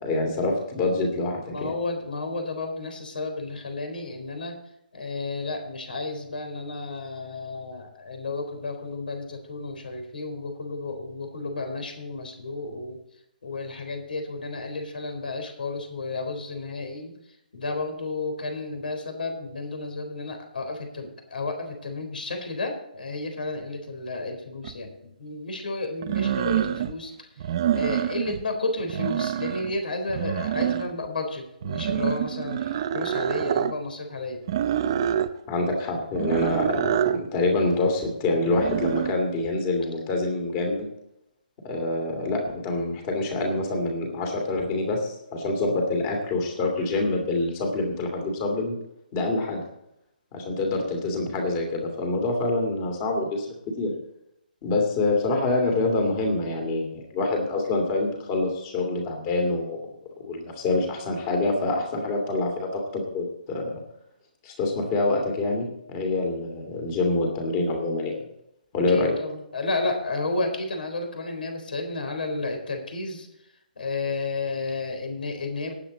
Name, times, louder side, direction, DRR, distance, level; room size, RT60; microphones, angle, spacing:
voice 1, 0.0-1.7 35.5-40.9 41.6-48.7 49.1-49.6 50.3-53.9 54.6-59.8 60.2-63.8 64.4-68.1 68.7-69.1, left 2 dB, 20° left, 2 dB, 2.6 m, -26 dB
voice 2, 1.5-4.6 4.9-13.0 13.4-17.1 17.5-27.3 27.7-34.4 68.9-73.3 73.8-75.7, left 3 dB, 75° left, 5 dB, 4.0 m, -32 dB
sound 1, 24.6-24.7 26.0-26.9 27.4-28.4 28.8-29.7 30.1-31.1 31.6-33.7 34.5-35.3 36.1-37.2 38.4-39.1, right 10 dB, 30° right, 0.6 m, -26 dB
18.5 x 8.2 x 4.1 m, 0.79 s
hypercardioid pair, 175°, 5 cm